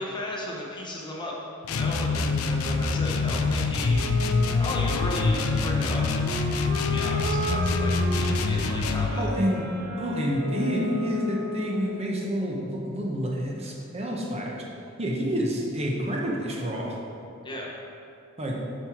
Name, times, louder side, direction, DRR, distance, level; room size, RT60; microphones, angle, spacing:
voice 1, 0.0-1.3 1.7-6.3 6.8-9.2 17.4-17.7, left 1 dB, 20° left, -2 dB, 0.9 m, -35 dB
sound 1, 1.6-9.2, left 4 dB, 75° left, 0.5 m, -25 dB
Wind instrument woodwind instrument, 3.9-12.2, left 1 dB, 65° right, 1.2 m, -34 dB
voice 2, 9.1-9.7 10.0-14.6 15.0-17.0 18.4-18.7, equal, 30° right, -2 dB, 0.9 m, -28 dB
7.4 x 4.7 x 4.5 m, 2.7 s
head